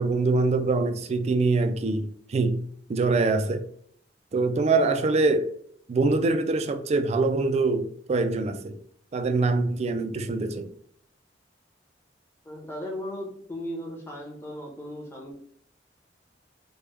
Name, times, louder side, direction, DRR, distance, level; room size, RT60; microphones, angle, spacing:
voice 1, 0.0-2.6 2.9-3.7 4.3-5.5 5.9-8.8 9.1-10.7, right 3 dB, 35° right, 0.3 m, -24 dB
voice 2, 12.4-15.3, equal, 15° left, 1.0 m, -36 dB
3.3 x 2.2 x 3.3 m
head